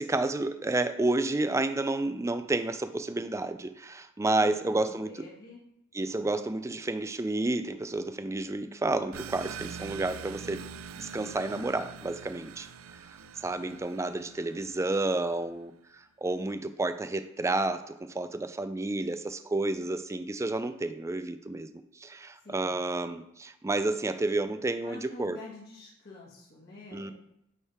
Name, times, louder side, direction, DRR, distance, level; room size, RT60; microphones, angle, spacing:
voice 1, 0.0-5.1 5.9-10.6 11.0-21.7 22.0-25.4 26.9-27.1, right 2 dB, 15° right, 10 dB, 0.4 m, -30 dB
voice 2, 4.4-5.6 13.5-13.9 22.4-22.7 24.8-27.1, left 2 dB, 50° left, -6 dB, 1.6 m, -48 dB
sound 1, 9.1-15.4, right 6 dB, 90° right, 0.4 m, -44 dB
9.2 x 3.4 x 4.3 m, 0.80 s
head